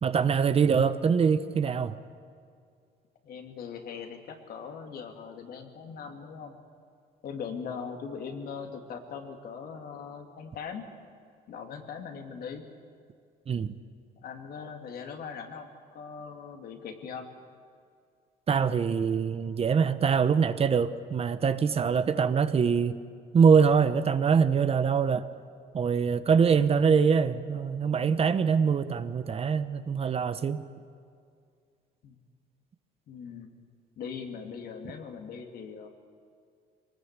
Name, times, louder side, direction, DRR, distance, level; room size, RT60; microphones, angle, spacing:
voice 1, 0.0-2.0 13.5-13.7 18.5-23.0 23.3-25.3 25.7-30.6, right 6 dB, 35° right, 12 dB, 0.9 m, -24 dB
voice 2, 3.2-6.6 7.2-10.8 11.5-12.6 14.2-15.7 15.9-17.3 32.0-32.2 33.1-33.5 34.0-35.9, left 6 dB, 65° left, 4 dB, 2.8 m, -40 dB
23.5 x 19.5 x 8.2 m, 2.3 s
cardioid pair, 110°, 17 cm